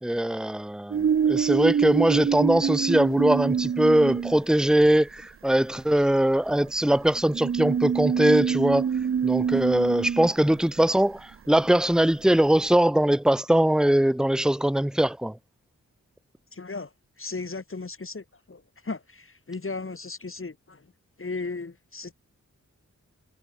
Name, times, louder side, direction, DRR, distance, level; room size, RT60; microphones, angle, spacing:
voice 1, 0.0-8.8 9.2-15.4, right 1 dB, ahead, 1.5 m, -21 dB
sound 1, 0.9-4.6 5.8-5.9 6.5-11.0 12.7-12.8, right 7 dB, 45° right, 0.5 m, -25 dB
voice 2, 16.5-16.9 17.2-20.8 21.2-22.1, left 3 dB, 45° left, 4.5 m, -36 dB
wide cardioid pair, 105°, 31 cm